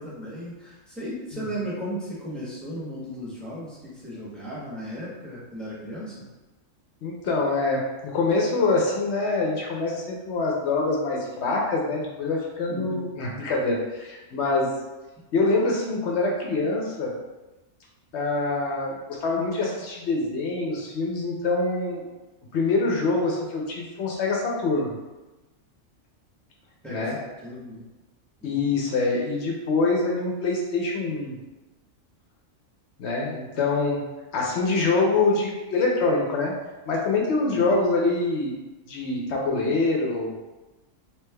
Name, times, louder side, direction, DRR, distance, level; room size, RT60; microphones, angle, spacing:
voice 1, 0.0-6.3 12.7-13.0 26.8-27.8 28.4-28.8 37.5-37.7, equal, ahead, -8 dB, 0.8 m, -36 dB
voice 2, 7.0-7.8 8.1-14.7 15.3-17.1 18.1-22.0 22.5-24.9 26.9-27.2 28.4-31.4 33.0-34.0 34.3-36.5 36.9-38.5 38.9-40.4, left 3 dB, 65° left, -1 dB, 0.8 m, -25 dB
3.2 x 3.1 x 2.2 m, 1.1 s
omnidirectional pair, 1.4 m